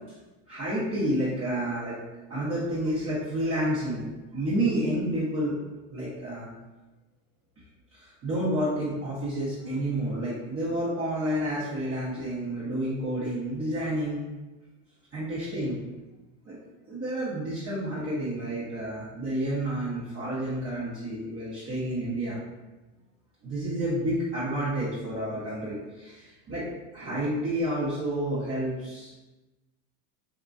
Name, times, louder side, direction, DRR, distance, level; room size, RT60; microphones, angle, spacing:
voice 1, 0.5-2.0 2.3-4.1 4.3-5.6 5.9-6.5 7.9-14.2 15.1-15.8 16.4-16.6 16.9-22.4 23.4-26.6 26.9-29.2, right 1 dB, 30° right, -10 dB, 0.8 m, -30 dB
2.9 x 2.4 x 2.4 m, 1.1 s
supercardioid pair, 115°, 49 cm